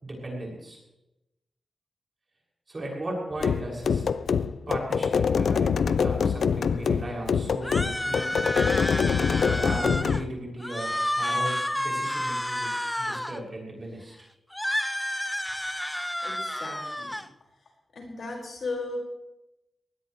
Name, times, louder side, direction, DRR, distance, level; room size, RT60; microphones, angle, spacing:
voice 1, 0.0-0.8 2.7-4.1 4.7-8.5 9.5-14.1, right 1 dB, 30° right, -2 dB, 6.7 m, -36 dB
sound 1, 3.4-10.3, left 6 dB, 75° left, 0.6 m, -25 dB
sound 2, 7.6-10.2 10.6-13.4 14.5-17.3, left 1 dB, 5° left, 0.6 m, -30 dB
voice 2, 16.2-17.2 17.9-19.0, left 3 dB, 60° left, -1 dB, 5.5 m, -36 dB
21.5 x 19.5 x 3.3 m, 0.92 s
wide cardioid pair, 140°, 0 cm